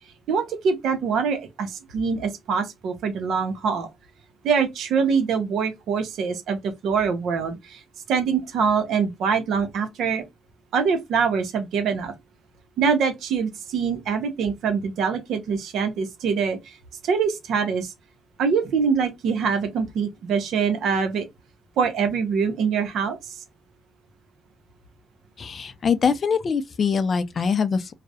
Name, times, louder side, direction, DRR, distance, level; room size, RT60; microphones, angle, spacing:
voice 1, 0.3-3.9 4.4-7.8 8.1-10.3 10.7-12.1 12.8-16.8 17.0-17.9 18.4-21.3 21.8-23.4, right 6 dB, 75° right, 0.6 m, -24 dB
voice 2, 25.4-27.9, left 6 dB, 45° left, 0.3 m, -23 dB
2.3 x 2.0 x 2.6 m
cardioid pair, 90°, 0 cm